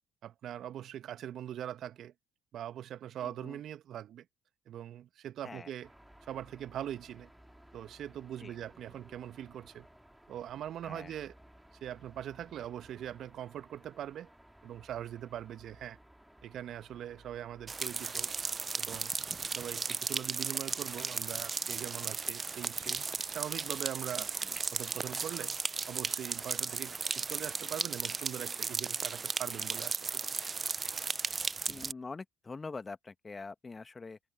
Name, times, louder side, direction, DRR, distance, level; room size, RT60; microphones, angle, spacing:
voice 1, 0.2-2.1 2.5-4.2 4.7-5.9 6.3-7.3 7.7-9.9 10.3-11.3 11.8-14.3 14.6-16.0 16.4-18.3 18.7-19.1 19.5-24.3 24.7-25.5 25.9-30.3, right 11 dB, 60° right, 1.4 m, -42 dB
voice 2, 3.2-3.6 5.4-5.7 8.4-8.6 10.8-11.2 24.2-24.6 31.7-34.2, left 4 dB, 30° left, 1.8 m, -45 dB
sound 1, 5.8-18.6, right 1 dB, 5° right, 3.0 m, -59 dB
sound 2, 17.7-31.9, right 4 dB, 35° right, 0.7 m, -35 dB
hypercardioid pair, 50°, 0 cm